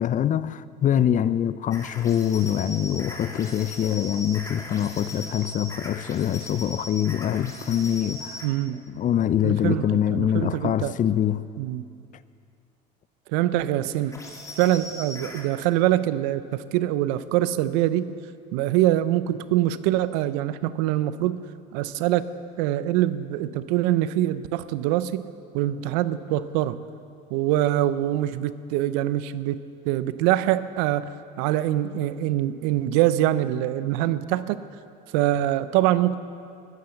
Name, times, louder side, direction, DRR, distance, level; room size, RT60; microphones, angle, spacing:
voice 1, 0.0-8.5 8.9-11.4, left 10 dB, 40° left, 0.5 m, -24 dB
sound 1, 1.7-8.5 14.1-15.5, left 1 dB, 15° left, 2.5 m, -39 dB
voice 2, 8.4-8.8 9.4-10.9 11.6-11.9 13.3-14.2 14.6-18.1 18.5-21.4 21.7-22.3 22.6-25.3 25.5-26.8 27.3-29.6 29.8-31.1 31.4-34.6 35.1-36.2, right 13 dB, 75° right, 0.6 m, -24 dB
14.5 x 10.5 x 7.0 m
supercardioid pair, 80°, 21 cm